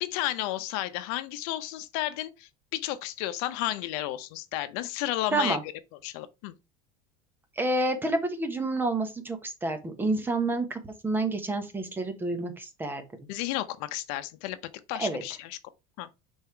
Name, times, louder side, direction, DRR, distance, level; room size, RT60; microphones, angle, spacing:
voice 1, 0.0-5.6 6.0-6.6 13.3-14.6 14.9-15.6 16.0-16.1, left 14 dB, 70° left, 0.8 m, -32 dB
voice 2, 7.6-13.0 15.0-15.2, right 2 dB, 10° right, 1.0 m, -29 dB
5.6 x 4.4 x 4.5 m
cardioid pair, 170°, 19 cm